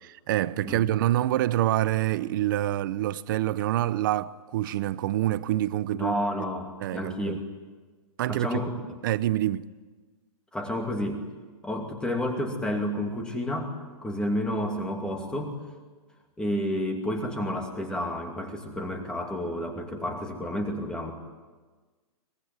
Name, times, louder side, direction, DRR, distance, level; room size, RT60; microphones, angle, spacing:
voice 1, 0.0-6.1 6.8-7.4 8.2-8.6 9.0-9.7, right 14 dB, 35° right, 0.7 m, -26 dB
voice 2, 5.9-7.6 8.3-8.7 10.5-11.2 11.6-13.7 14.0-15.6 16.4-21.1, left 1 dB, 5° left, 2.5 m, -30 dB
23.5 x 21.5 x 9.4 m
hypercardioid pair, 165°, 19 cm